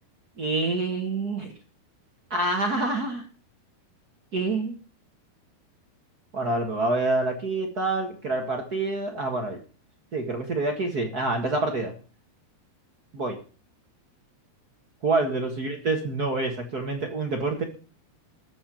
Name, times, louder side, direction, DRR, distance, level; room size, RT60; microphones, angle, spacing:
voice 1, 0.4-1.5 2.3-3.2 4.3-4.8 6.3-9.6 10.1-11.9 13.1-13.4 15.0-17.6, right 2 dB, 55° right, 2 dB, 1.0 m, -27 dB
14.5 x 5.6 x 8.8 m, 0.38 s
omnidirectional pair, 4.6 m